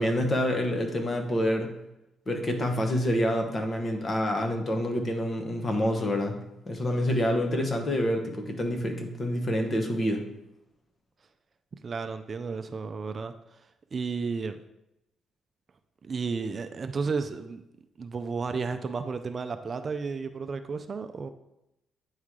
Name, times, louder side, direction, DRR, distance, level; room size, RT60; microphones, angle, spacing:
voice 1, 0.0-1.7 2.3-10.3, equal, 35° left, 3 dB, 1.1 m, -27 dB
voice 2, 11.8-13.3 13.9-14.6 16.0-17.6 18.0-21.3, right 5 dB, 40° right, 9 dB, 0.4 m, -32 dB
9.2 x 3.2 x 3.7 m, 0.89 s
cardioid pair, 90°, 0 cm